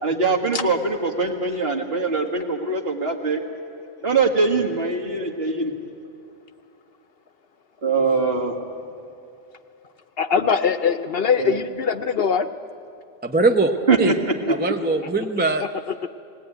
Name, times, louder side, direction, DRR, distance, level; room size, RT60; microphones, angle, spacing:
voice 1, 0.0-3.4 4.0-5.7 7.8-8.6 11.4-11.6 13.9-14.1, right 4 dB, 55° right, 2 dB, 2.0 m, -22 dB
voice 2, 10.2-12.5 15.0-15.1 15.6-16.1, left 6 dB, 60° left, 9 dB, 0.9 m, -22 dB
voice 3, 13.2-14.2 14.5-15.6, right 3 dB, 10° right, 5 dB, 0.5 m, -21 dB
19.5 x 18.5 x 9.1 m, 2.5 s
omnidirectional pair, 1.2 m